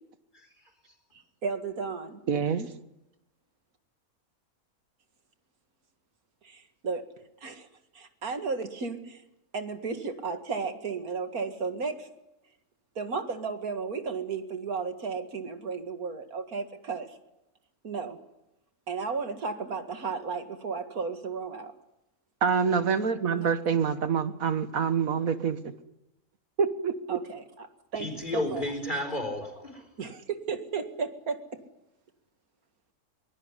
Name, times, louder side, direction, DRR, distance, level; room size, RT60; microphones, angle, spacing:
voice 1, 1.4-2.2 6.4-7.0 7.4-7.7 7.9-9.2 9.5-12.1 13.0-17.1 17.8-18.2 18.9-21.7 23.3-23.5 27.1-28.1 28.3-28.6 30.0-31.4, right 5 dB, 90° right, 7 dB, 2.5 m, -34 dB
voice 2, 2.3-2.7 22.4-25.6 26.6-27.2, right 6 dB, 70° right, 11 dB, 1.8 m, -26 dB
voice 3, 27.9-29.9, left 1 dB, 35° left, 7 dB, 4.7 m, -32 dB
23.0 x 19.5 x 9.9 m, 0.91 s
omnidirectional pair, 1.5 m